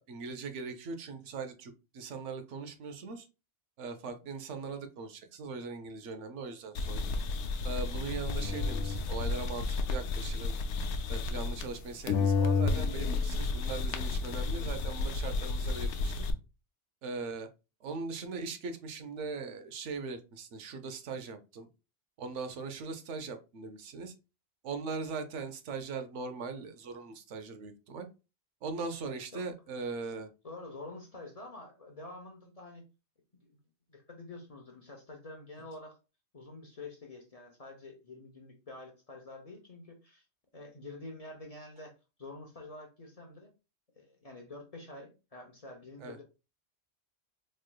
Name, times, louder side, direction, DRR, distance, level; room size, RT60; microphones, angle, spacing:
voice 1, 0.0-3.3 3.8-7.0 7.6-10.5 11.1-16.1 17.0-17.5 17.8-21.7 22.2-24.1 24.6-28.1 28.6-30.3 46.0-46.2, right 4 dB, 80° right, 8 dB, 1.0 m, -40 dB
sound 1, 6.7-11.8 12.1-16.3, left 4 dB, 75° left, 0.9 m, -31 dB
voice 2, 14.5-15.0 29.3-29.4 30.4-32.8 33.9-36.0 36.3-40.3 40.5-41.9 42.2-43.5 44.0-46.2, left 2 dB, 35° left, 2 dB, 0.7 m, -47 dB
4.3 x 3.1 x 2.2 m, 0.29 s
omnidirectional pair, 1.2 m